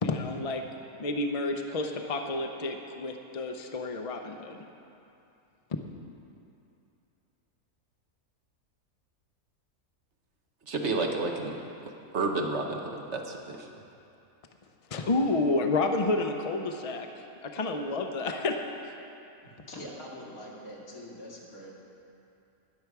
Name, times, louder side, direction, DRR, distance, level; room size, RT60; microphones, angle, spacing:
voice 1, 0.0-0.6 1.0-4.7 5.7-5.8 14.9-18.6, left 2 dB, 45° left, 4 dB, 0.4 m, -30 dB
voice 2, 10.7-11.6 12.1-13.7, right 3 dB, 55° right, 2 dB, 1.1 m, -30 dB
voice 3, 19.4-21.7, equal, 75° left, -4 dB, 2.4 m, -44 dB
20.0 x 6.9 x 4.7 m, 2.7 s
omnidirectional pair, 1.5 m